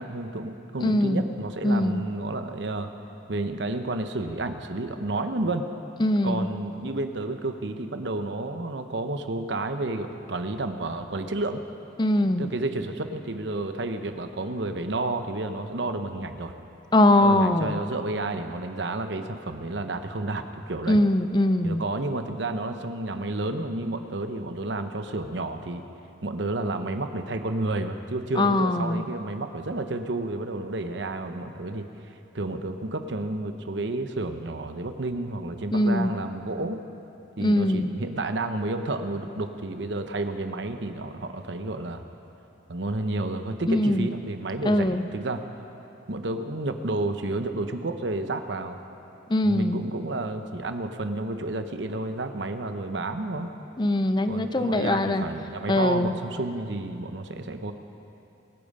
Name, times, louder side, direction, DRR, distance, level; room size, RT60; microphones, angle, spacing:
voice 1, 0.0-2.9 3.3-5.7 6.2-11.6 12.4-16.5 17.2-21.0 21.6-25.8 26.2-31.9 32.3-36.8 37.4-42.0 42.7-45.4 46.1-48.8 49.4-53.5 54.3-57.7, right 2 dB, 75° right, 7 dB, 0.9 m, -31 dB
voice 2, 0.8-1.2 1.6-2.0 6.0-6.5 12.0-12.5 16.9-17.8 20.9-21.8 28.4-29.0 35.7-36.1 37.4-37.9 43.7-44.1 44.6-45.0 49.3-49.8 53.8-55.2 55.7-56.1, left 1 dB, 25° left, 10 dB, 0.5 m, -22 dB
25.5 x 8.7 x 5.4 m, 2.9 s
head